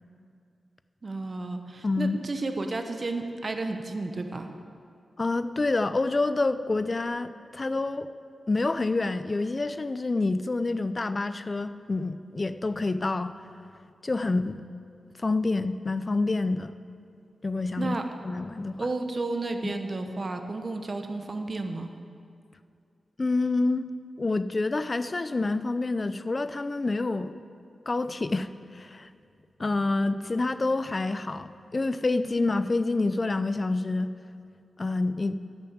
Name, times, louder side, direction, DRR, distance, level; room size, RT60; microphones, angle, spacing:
voice 1, 1.0-4.5 17.8-18.1 18.8-21.9, right 2 dB, 40° right, 6 dB, 0.9 m, -32 dB
voice 2, 1.8-2.2 5.2-8.1 8.5-13.4 14.0-14.6 15.2-16.8 17.4-18.0 18.2-18.9 19.6-19.7 23.2-23.9 24.2-27.4 27.9-28.5 28.7-29.1 29.6-34.1 34.8-35.4, left 3 dB, 35° left, 12 dB, 0.5 m, -27 dB
10.5 x 7.1 x 7.9 m, 2.4 s
wide cardioid pair, 90°, 0 cm